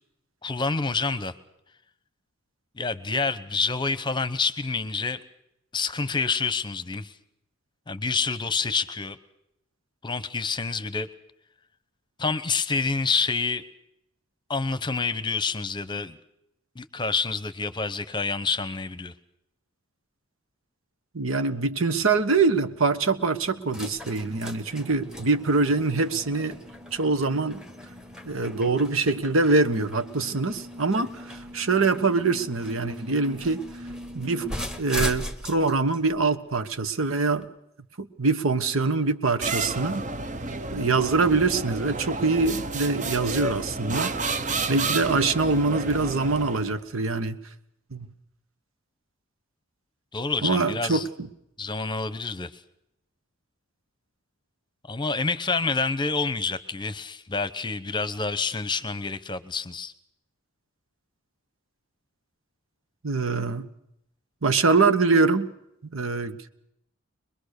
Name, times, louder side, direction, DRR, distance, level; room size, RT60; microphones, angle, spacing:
voice 1, 0.4-1.3 2.8-5.2 5.7-7.1 7.9-9.2 10.0-11.1 12.2-13.6 14.5-16.2 16.7-19.1 50.1-51.1 51.6-52.5 54.9-59.9, left 4 dB, 20° left, 0.9 m, -28 dB
voice 2, 21.1-26.6 26.9-27.6 28.3-33.6 34.1-37.5 38.0-40.0 40.7-44.1 44.7-47.4 47.9-48.1 50.4-51.3 63.0-63.7 64.4-65.5 65.9-66.4, right 3 dB, 80° right, 1.3 m, -24 dB
sound 1, 21.8-37.5, left 1 dB, 5° right, 1.3 m, -39 dB
sound 2, 39.4-46.8, right 3 dB, 35° right, 0.9 m, -31 dB
23.5 x 21.5 x 6.6 m
head